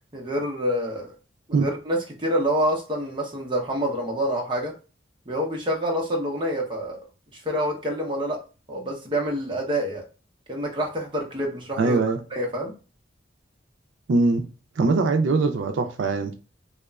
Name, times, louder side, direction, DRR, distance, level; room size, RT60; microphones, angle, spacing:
voice 1, 0.1-1.1 1.5-4.7 5.3-7.0 7.4-8.4 8.7-10.0 10.5-12.0 12.3-12.8, equal, 25° right, 0.6 m, -27 dB
voice 2, 11.8-12.2 14.1-14.4 14.8-16.3, right 3 dB, 80° right, 0.4 m, -21 dB
2.8 x 2.1 x 2.2 m
head